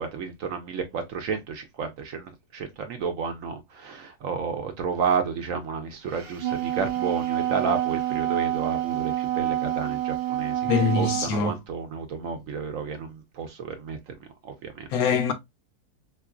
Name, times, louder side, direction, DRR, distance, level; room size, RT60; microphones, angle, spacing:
voice 1, 0.0-14.0 14.4-14.9, right 6 dB, 65° right, 0.9 m, -31 dB
Wind instrument woodwind instrument, 6.2-11.4, right 13 dB, 90° right, 0.5 m, -27 dB
voice 2, 10.6-11.5 14.9-15.3, left 5 dB, 70° left, 1.0 m, -23 dB
3.7 x 2.9 x 2.3 m
omnidirectional pair, 1.7 m